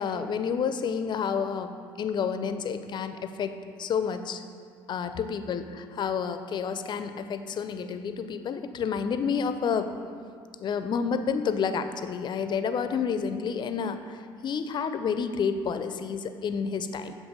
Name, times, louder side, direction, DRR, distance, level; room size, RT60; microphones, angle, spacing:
voice 1, 0.0-4.4 4.9-10.0 10.6-17.1, left 6 dB, 45° left, 10 dB, 0.4 m, -30 dB
7.3 x 3.2 x 4.9 m, 2.2 s
hypercardioid pair, 65°, 11 cm